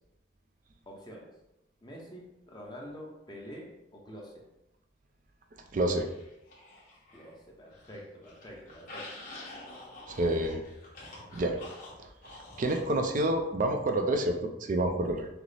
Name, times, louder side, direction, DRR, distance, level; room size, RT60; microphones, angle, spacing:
voice 1, 0.9-1.3 1.8-4.3 7.1-9.1, equal, 25° left, -2 dB, 0.7 m, -46 dB
voice 2, 5.7-6.1 10.1-10.6 11.3-11.6 12.0-12.1 12.6-14.4 14.7-15.3, right 1 dB, 45° right, 4 dB, 0.4 m, -28 dB
sound 1, 6.0-7.3 7.7-13.0, left 2 dB, 50° left, 1.3 m, -48 dB
5.9 x 2.0 x 3.3 m, 0.91 s
head